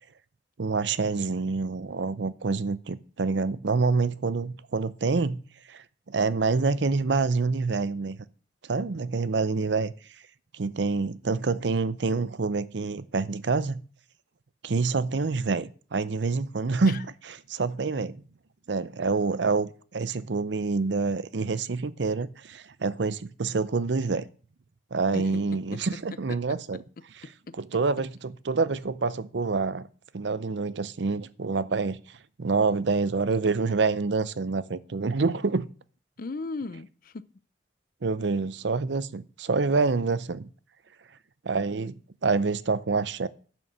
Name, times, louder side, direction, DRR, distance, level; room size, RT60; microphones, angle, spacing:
voice 1, 0.6-5.4 5.7-8.2 8.6-9.9 10.5-13.8 14.6-17.1 17.5-18.2 18.7-24.3 24.9-26.8 27.6-29.9 30.1-32.0 32.4-35.7 38.0-40.5 41.4-43.3, right 4 dB, 70° right, 0.6 m, -27 dB
voice 2, 25.1-25.8 27.5-27.6 36.2-37.2, left 3 dB, 50° left, 0.6 m, -37 dB
11.0 x 6.3 x 6.9 m
head